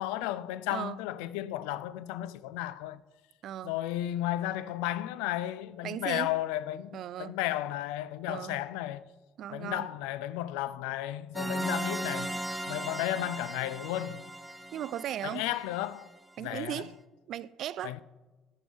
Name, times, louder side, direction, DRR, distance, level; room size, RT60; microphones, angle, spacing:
voice 1, 0.0-3.0 3.6-9.0 9.5-14.2 15.2-16.1 16.4-16.8 17.8-18.0, left 13 dB, 70° left, 0.3 m, -34 dB
voice 2, 3.4-3.7 5.8-6.3 6.9-7.4 8.3-8.6 9.4-9.9 14.7-15.4 16.4-16.9 17.3-18.0, right 11 dB, 55° right, 0.3 m, -37 dB
sound 1, 11.3-16.0, right 1 dB, ahead, 1.0 m, -37 dB
10.5 x 9.5 x 3.5 m
figure-of-eight pair, 50°, 0 cm